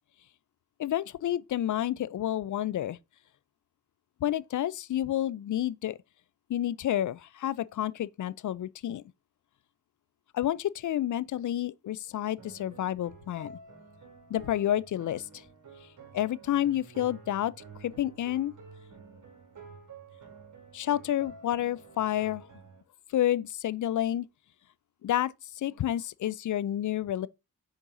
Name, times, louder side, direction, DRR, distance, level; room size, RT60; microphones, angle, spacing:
voice 1, 0.8-3.0 4.2-6.0 6.5-9.0 10.3-13.5 14.3-15.2 16.1-17.5 17.8-18.5 20.7-22.4 23.1-24.3 25.0-27.3, left 12 dB, 55° left, 0.5 m, -29 dB
sound 1, 12.4-22.8, right 4 dB, 55° right, 2.4 m, -50 dB
6.4 x 4.5 x 3.9 m
supercardioid pair, 50°, 36 cm